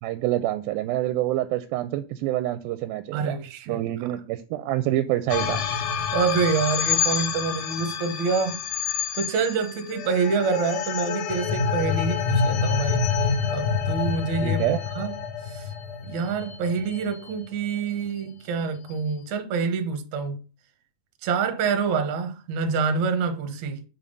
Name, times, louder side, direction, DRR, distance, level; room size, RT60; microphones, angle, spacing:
voice 1, 0.0-3.4 3.7-5.6 14.4-14.8, right 14 dB, 85° right, 2.3 m, -26 dB
voice 2, 3.1-3.8 6.1-8.6 9.1-13.0 13.5-15.1 15.4-15.7 16.0-20.4 21.2-23.8, right 5 dB, 65° right, 2.0 m, -26 dB
sound 1, 5.3-17.7, left 6 dB, 70° left, 2.2 m, -27 dB
5.7 x 4.8 x 5.2 m
omnidirectional pair, 4.3 m